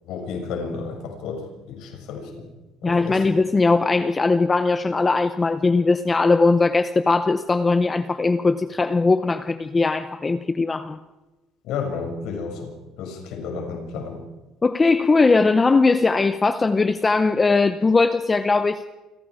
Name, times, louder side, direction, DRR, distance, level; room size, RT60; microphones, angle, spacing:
voice 1, 0.1-2.5 2.8-3.3 11.7-14.2, left 5 dB, 65° left, 3 dB, 6.9 m, -32 dB
voice 2, 2.8-11.0 14.6-18.8, left 3 dB, 15° left, 11 dB, 0.7 m, -19 dB
29.0 x 25.5 x 4.9 m, 1.1 s
cardioid pair, 175°, 0 cm